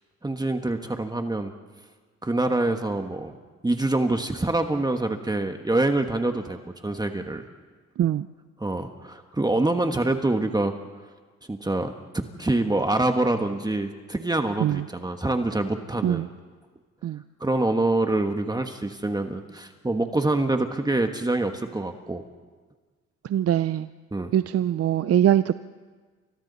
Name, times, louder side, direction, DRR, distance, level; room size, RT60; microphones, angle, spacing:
voice 1, 0.2-1.5 2.2-3.3 3.6-7.4 8.6-10.7 11.5-16.3 17.4-22.2 24.1-24.3, right 2 dB, 15° right, 5 dB, 1.4 m, -25 dB
voice 2, 8.0-8.3 14.6-14.9 16.0-16.3 17.0-17.2 23.2-23.9 24.3-25.5, right 11 dB, 50° right, 13 dB, 0.6 m, -22 dB
29.5 x 25.5 x 4.1 m, 1.4 s
cardioid pair, 90°, 30 cm